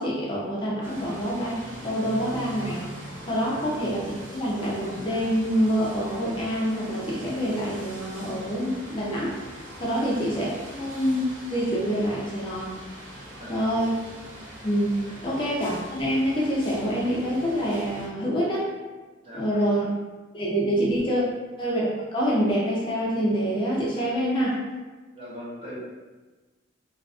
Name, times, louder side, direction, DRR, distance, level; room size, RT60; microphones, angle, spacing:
voice 1, 0.0-1.5 1.8-2.9 3.3-9.3 9.8-12.8 13.5-13.9 14.6-18.7 19.3-19.8 20.3-21.2 21.6-24.6, equal, 25° left, -6 dB, 0.4 m, -26 dB
sound 1, 0.8-18.1, right 1 dB, 85° right, 0.6 m, -42 dB
voice 2, 13.3-13.8 15.0-15.2 19.2-19.7 20.7-21.0 23.9-24.1 25.1-25.8, equal, 30° right, -7 dB, 0.6 m, -42 dB
2.4 x 2.3 x 2.3 m, 1.3 s
head